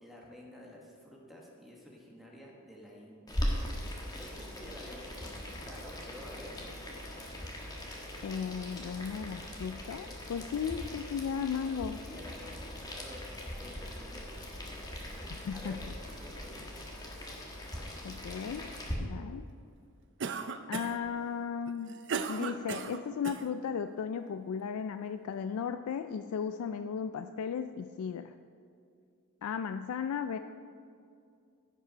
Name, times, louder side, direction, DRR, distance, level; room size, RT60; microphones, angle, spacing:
voice 1, 0.0-3.4 4.1-6.6 11.8-14.7 15.1-15.2 15.5-15.9 16.2-16.5 17.2-17.3, left 1 dB, ahead, -2 dB, 1.3 m, -50 dB
Boiling, 3.3-18.9, equal, 20° left, 1.3 m, -40 dB
voice 2, 8.2-12.0 15.4-15.8 18.0-18.7 19.0-19.5 20.7-21.9 22.3-28.3 29.4-30.4, left 7 dB, 80° left, 9 dB, 0.3 m, -35 dB
Cough, 20.2-21.1 21.7-23.5, right 5 dB, 55° right, 0.5 m, -36 dB
15.5 x 5.4 x 5.0 m, 2.4 s
head